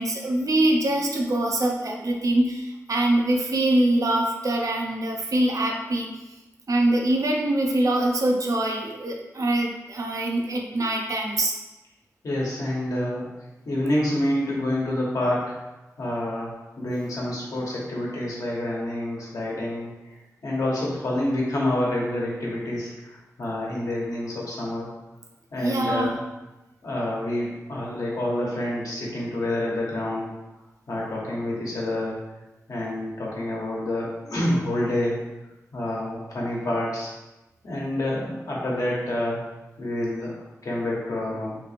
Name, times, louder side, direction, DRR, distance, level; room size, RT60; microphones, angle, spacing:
voice 1, 0.0-6.1 6.7-11.6 25.6-26.1, right 1 dB, 65° right, 1 dB, 0.6 m, -24 dB
voice 2, 12.2-13.2 13.6-15.5 16.0-20.1 20.4-24.9 25.5-26.2 26.8-30.3 30.9-32.2 32.7-35.2 35.7-37.1 37.6-39.4 39.8-41.6, left 1 dB, 80° left, -5 dB, 1.1 m, -28 dB
3.2 x 2.8 x 3.3 m, 1.0 s
cardioid pair, 45°, 6 cm